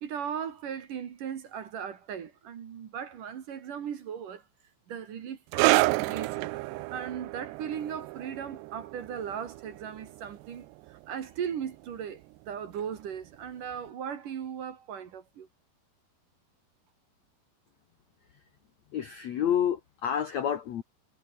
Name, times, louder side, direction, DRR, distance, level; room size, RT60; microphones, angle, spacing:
voice 1, 0.0-4.4 4.9-6.5 6.9-15.5, right 8 dB, 55° right, 3.2 m, -38 dB
sound 1, 5.5-12.5 12.8-13.0 13.8-13.9, right 23 dB, 80° right, 2.6 m, -30 dB
voice 2, 18.9-20.8, left 9 dB, 65° left, 1.8 m, -29 dB
omnidirectional pair, 5.1 m